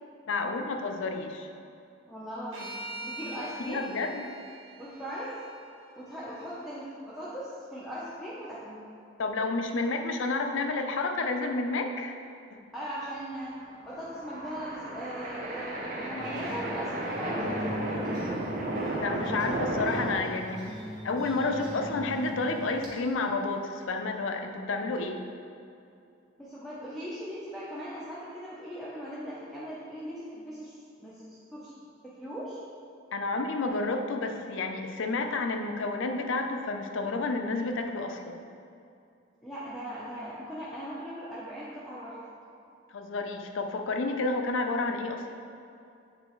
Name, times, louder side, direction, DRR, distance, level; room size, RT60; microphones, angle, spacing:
voice 1, 0.3-1.5 3.7-4.3 9.2-12.2 12.5-12.6 19.0-20.8 21.0-25.2 33.1-38.5 42.9-45.3, left 3 dB, 75° left, 5 dB, 0.5 m, -30 dB
voice 2, 2.1-3.8 4.8-5.3 6.0-8.8 12.7-13.6 13.8-18.2 26.4-31.7 32.0-32.6 39.4-42.2, equal, ahead, -10 dB, 0.6 m, -39 dB
sound 1, 2.5-6.7, right 1 dB, 75° right, 0.9 m, -44 dB
sound 2, 13.7-20.2, right 1 dB, 40° right, 0.7 m, -34 dB
sound 3, 16.2-22.9, equal, 20° right, 1.1 m, -40 dB
7.7 x 4.0 x 3.0 m, 2.6 s
head